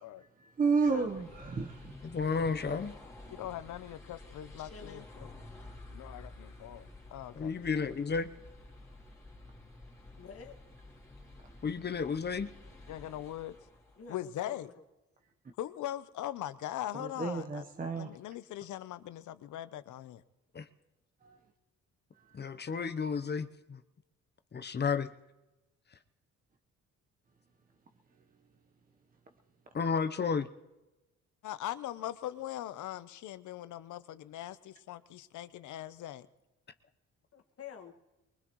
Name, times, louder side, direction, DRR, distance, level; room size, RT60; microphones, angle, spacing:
voice 1, 0.4-2.0 16.9-18.1 21.2-21.4 22.2-22.5, right 4 dB, 30° right, 5 dB, 1.0 m, -32 dB
sound 1, 0.6-14.1, left 2 dB, 10° left, 3.1 m, -51 dB
voice 2, 2.0-3.0 7.3-8.3 11.6-12.5 20.5-20.7 22.3-23.8 24.5-25.1 29.7-30.5, left 5 dB, 35° left, 10 dB, 0.8 m, -32 dB
voice 3, 3.3-5.3 5.9-7.6 12.9-13.6 14.1-14.7 15.6-17.6 18.0-20.2 31.4-36.3, left 13 dB, 75° left, 14 dB, 0.8 m, -41 dB
voice 4, 4.6-5.1 10.2-10.6 11.9-12.0 14.0-14.8 37.3-37.9, left 6 dB, 50° left, 3 dB, 1.8 m, -48 dB
23.0 x 20.0 x 3.1 m, 1.0 s
cardioid pair, 90°, 30 cm